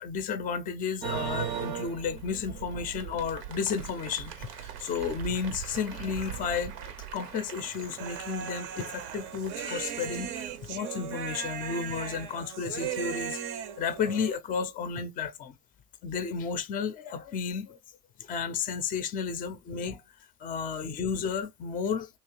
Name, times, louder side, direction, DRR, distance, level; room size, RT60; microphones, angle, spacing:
voice 1, 0.0-15.6 16.0-17.8 18.2-20.0 20.4-22.1, left 6 dB, 20° left, 0.5 m, -33 dB
sound 1, 1.0-10.8, right 9 dB, 80° right, 0.8 m, -40 dB
Human voice, 8.0-14.4, right 8 dB, 45° right, 0.6 m, -37 dB
2.8 x 2.7 x 3.0 m
hypercardioid pair, 95°, 47 cm